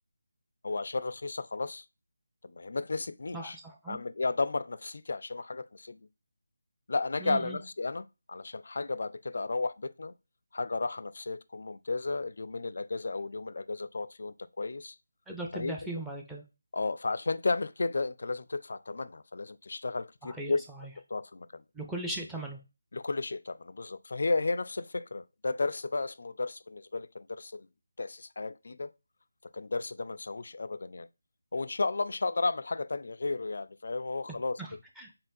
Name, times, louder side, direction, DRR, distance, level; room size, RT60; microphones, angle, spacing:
voice 1, 0.6-1.8 2.4-3.6 3.9-6.1 6.9-10.1 10.5-15.0 15.5-15.7 16.7-20.6 21.1-21.6 22.9-27.7 28.0-28.9 29.5-31.1 31.5-34.6, left 3 dB, 55° left, 0.3 m, -33 dB
voice 2, 3.3-4.0 7.2-7.6 15.3-16.4 20.2-20.9 21.7-22.6 34.3-35.1, right 2 dB, 5° right, 0.6 m, -39 dB
4.2 x 3.7 x 2.6 m
figure-of-eight pair, 155°, 0 cm